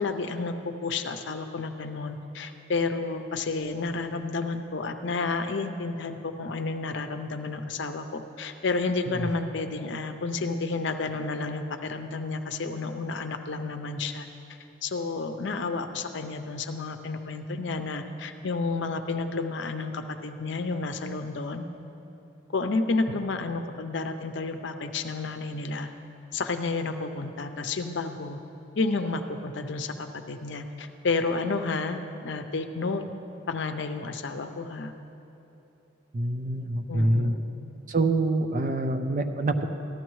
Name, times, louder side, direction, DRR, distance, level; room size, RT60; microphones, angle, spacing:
voice 1, 0.0-14.3 14.8-21.7 22.5-25.9 26.3-28.4 28.8-33.0 33.5-34.9 36.9-37.4, left 3 dB, 70° left, 7 dB, 0.6 m, -31 dB
voice 2, 36.1-37.3 37.9-39.7, right 2 dB, 40° right, 7 dB, 0.5 m, -26 dB
14.5 x 12.0 x 3.1 m, 3.0 s
head